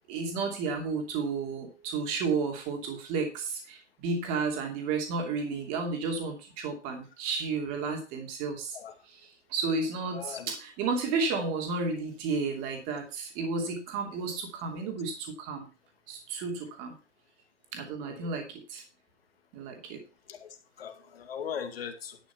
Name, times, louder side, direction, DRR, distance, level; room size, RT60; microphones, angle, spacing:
voice 1, 0.1-8.8 9.1-15.6 16.1-16.9 17.7-18.8 19.5-20.0, right 4 dB, 25° right, 3 dB, 2.8 m, -32 dB
voice 2, 10.1-10.5 18.0-18.3 20.3-20.5 20.8-22.2, left 8 dB, 55° left, 6 dB, 2.1 m, -39 dB
11.5 x 6.0 x 5.8 m, 0.31 s
hypercardioid pair, 150°, 36 cm